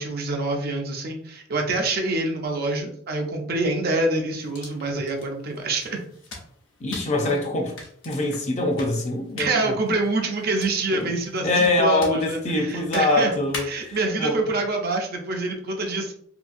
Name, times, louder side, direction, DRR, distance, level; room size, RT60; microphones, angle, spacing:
voice 1, 0.0-6.0 9.4-13.3 13.6-16.1, right 2 dB, 50° right, 0.6 m, -26 dB
sound 1, 4.4-14.0, left 2 dB, 80° left, 0.9 m, -43 dB
voice 2, 6.8-7.8 8.0-9.8 10.9-11.1 11.4-14.4, left 2 dB, 35° left, 0.5 m, -24 dB
2.8 x 2.7 x 2.5 m
head